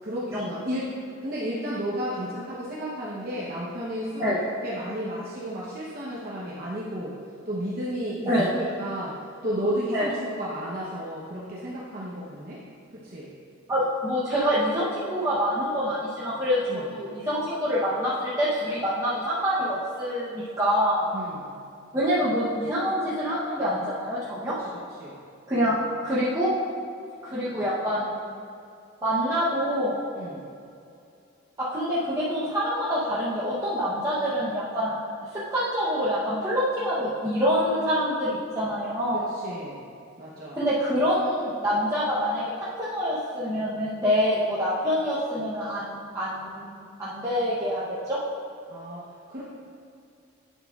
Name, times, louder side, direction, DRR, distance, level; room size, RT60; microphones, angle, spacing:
voice 1, 0.0-0.9 1.2-4.4 4.6-7.1 7.5-9.1 9.4-12.6 13.0-13.3 16.7-16.9 21.1-21.5 24.6-24.7 25.0-25.1 30.2-30.5 39.1-39.8 40.2-40.6 48.7-49.0 49.3-49.4, equal, 45° right, -7 dB, 0.8 m, -32 dB
voice 2, 13.7-21.1 21.9-24.5 25.5-26.5 27.2-28.2 29.0-30.0 31.6-35.0 35.5-39.2 40.6-48.2, equal, 15° right, -10 dB, 0.8 m, -26 dB
9.2 x 7.3 x 2.4 m, 2.5 s
head